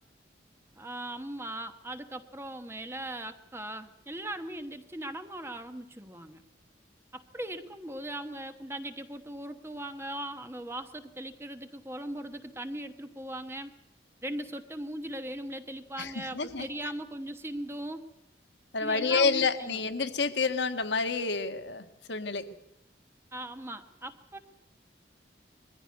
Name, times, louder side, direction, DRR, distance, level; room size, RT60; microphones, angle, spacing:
voice 1, 0.8-6.4 7.1-13.7 14.2-18.0 18.8-19.8 23.3-24.4, right 1 dB, 15° right, 8 dB, 1.0 m, -39 dB
voice 2, 16.0-16.7 18.7-22.4, left 4 dB, 75° left, 9 dB, 1.6 m, -29 dB
22.0 x 15.0 x 9.4 m, 0.86 s
head